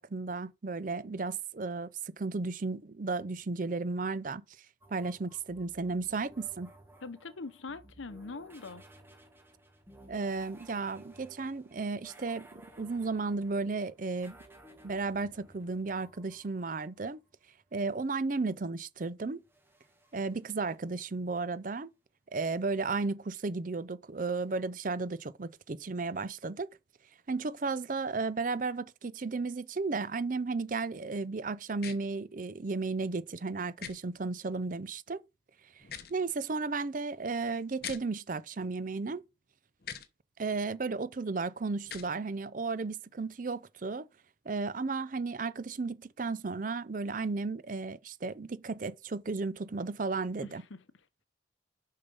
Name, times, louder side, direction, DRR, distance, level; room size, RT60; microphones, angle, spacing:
voice 1, 0.0-1.9 2.2-4.4 4.9-6.7 10.1-14.4 14.8-17.2 17.7-19.4 20.1-21.9 22.3-26.7 27.3-35.2 35.8-35.9 36.1-39.2 40.4-44.1 44.5-50.6, right 3 dB, 45° right, 0.5 m, -34 dB
sound 1, 4.8-17.4 19.4-21.0, right 1 dB, 10° right, 1.4 m, -57 dB
voice 2, 7.0-8.8 50.4-51.0, left 3 dB, 85° left, 0.8 m, -43 dB
sound 2, 31.8-32.0 33.8-33.9 35.8-36.1 37.8-38.0 39.8-40.1 41.8-42.1, left 8 dB, 50° left, 1.0 m, -41 dB
6.8 x 5.6 x 5.4 m
head